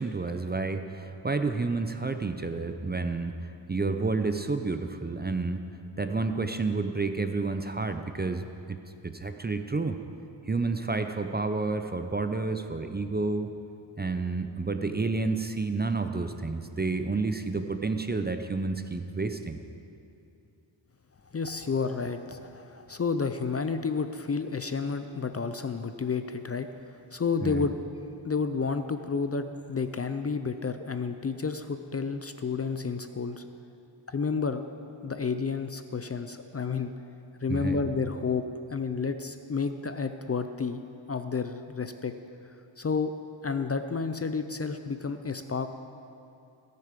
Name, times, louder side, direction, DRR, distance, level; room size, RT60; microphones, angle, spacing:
voice 1, 0.0-3.3 3.7-5.6 6.0-8.8 9.0-10.0 10.5-13.5 14.0-19.6 27.4-27.6 37.5-37.8, right 3 dB, 20° right, 8 dB, 0.6 m, -30 dB
voice 2, 21.3-26.7 27.1-27.8 28.2-33.4 34.1-34.6 35.0-36.9 37.4-38.4 38.7-40.8 41.1-42.1 42.8-43.1 43.4-45.7, left 5 dB, 30° left, 9 dB, 0.5 m, -30 dB
18.5 x 6.8 x 5.2 m, 2.7 s
cardioid pair, 70°, 50 cm